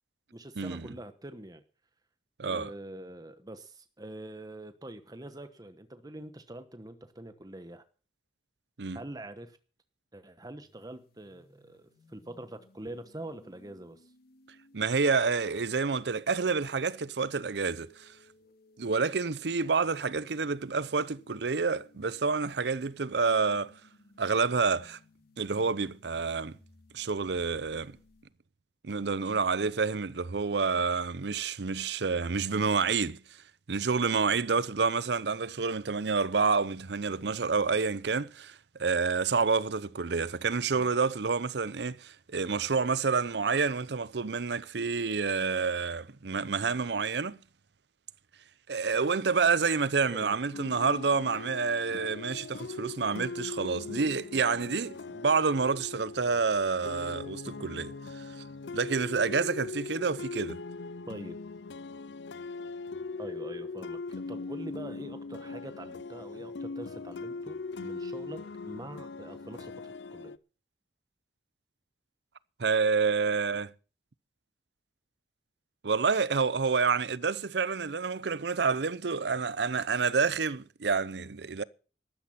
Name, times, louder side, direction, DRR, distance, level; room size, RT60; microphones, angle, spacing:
voice 1, 0.3-1.6 2.4-7.8 8.9-9.6 10.1-14.1 50.1-50.4 61.1-61.4 63.2-70.3, right 1 dB, 20° right, 1.1 m, -44 dB
voice 2, 2.4-2.7 8.8-9.0 14.7-18.1 18.8-23.7 24.2-25.0 25.4-26.6 26.9-28.0 28.8-33.2 33.7-47.4 48.7-58.3 58.7-60.6 72.6-73.7 75.8-81.6, right 5 dB, 70° right, 0.7 m, -28 dB
sound 1, 10.6-28.2, left 1 dB, 60° left, 3.4 m, -62 dB
sound 2, 50.5-70.4, left 3 dB, 75° left, 0.6 m, -40 dB
13.0 x 12.5 x 5.8 m
head